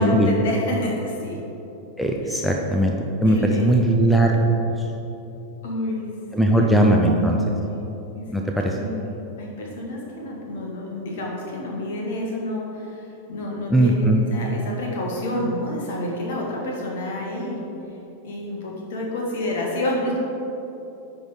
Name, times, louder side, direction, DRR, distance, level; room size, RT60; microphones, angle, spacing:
voice 1, 0.0-1.4 2.2-2.5 3.3-3.8 5.6-6.1 6.4-6.7 7.2-7.8 8.1-9.1 9.4-17.6 18.2-20.2, left 1 dB, 55° left, -2 dB, 1.7 m, -29 dB
voice 2, 2.0-4.5 6.3-7.4 8.3-8.8 13.7-14.2, right 1 dB, ahead, 1 dB, 0.6 m, -19 dB
10.0 x 3.8 x 5.1 m, 3.0 s
figure-of-eight pair, 90°, 0 cm